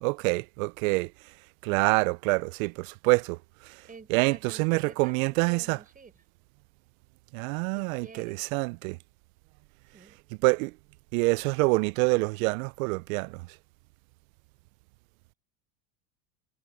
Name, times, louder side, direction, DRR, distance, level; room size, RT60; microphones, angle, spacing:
voice 1, 0.0-1.1 1.6-3.4 4.1-5.8 7.3-9.0 10.4-10.7 11.1-13.4, right 27 dB, 65° right, 0.6 m, -26 dB
voice 2, 3.8-6.2 7.7-8.5 9.9-10.2, right 4 dB, 20° right, 6.2 m, -50 dB
hypercardioid pair, 100°, 46 cm